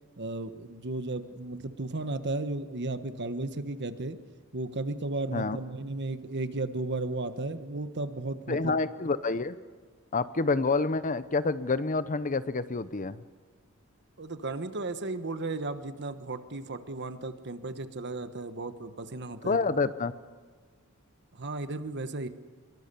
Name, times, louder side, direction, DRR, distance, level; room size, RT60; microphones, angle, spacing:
voice 1, 0.2-4.2 4.5-8.6 14.2-19.7 21.4-22.3, right 2 dB, 55° right, 10 dB, 1.3 m, -34 dB
voice 2, 8.5-9.6 10.1-13.2 19.4-20.1, left 3 dB, 40° left, 14 dB, 0.8 m, -28 dB
24.0 x 23.0 x 7.0 m, 1.5 s
head